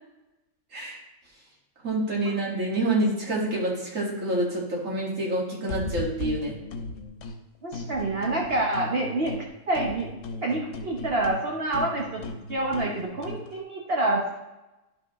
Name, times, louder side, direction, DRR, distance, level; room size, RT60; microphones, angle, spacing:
voice 1, 1.8-6.6, right 1 dB, 75° right, -4 dB, 2.4 m, -27 dB
sound 1, 5.7-7.4 7.7-9.5 9.7-13.5, left 3 dB, 70° left, 1.2 m, -37 dB
voice 2, 7.6-9.4 9.7-10.1 10.4-12.2 12.5-14.4, right 2 dB, 50° right, -2 dB, 1.2 m, -27 dB
10.5 x 6.0 x 3.1 m, 0.99 s
omnidirectional pair, 1.3 m